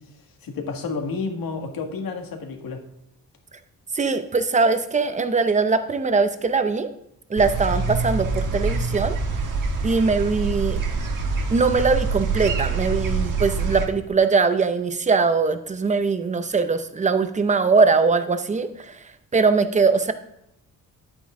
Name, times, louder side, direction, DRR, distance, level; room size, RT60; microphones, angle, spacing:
voice 1, 0.4-2.8, left 4 dB, 75° left, 3 dB, 1.9 m, -30 dB
voice 2, 3.9-6.9 7.3-9.2 9.8-10.8 11.5-18.9 19.3-20.1, right 4 dB, 20° right, 10 dB, 0.6 m, -21 dB
sound 1, 7.4-13.9, right 4 dB, 60° right, 1.6 m, -25 dB
11.0 x 8.7 x 3.7 m, 0.82 s
wide cardioid pair, 175°, 35 cm